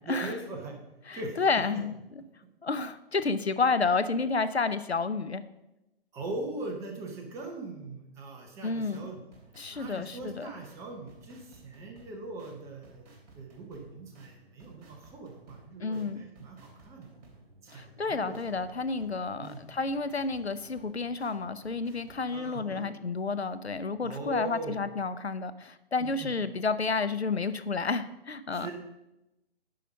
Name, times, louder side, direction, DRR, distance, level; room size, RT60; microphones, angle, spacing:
voice 1, 0.0-0.8 1.1-1.3 6.1-9.2 9.7-13.1 13.4-17.1 17.6-18.6 19.4-19.6 22.3-22.9 24.0-24.8 26.0-26.3 28.5-28.7, right 2 dB, 10° right, 2 dB, 0.7 m, -40 dB
voice 2, 1.1-2.0 2.6-5.4 8.6-9.1 9.6-10.5 15.8-16.2 17.7-28.7, left 4 dB, 85° left, 12 dB, 0.7 m, -30 dB
sound 1, 8.7-22.4, right 2 dB, 40° right, 3.4 m, -56 dB
10.5 x 5.0 x 5.2 m, 0.95 s
figure-of-eight pair, 130°, 32 cm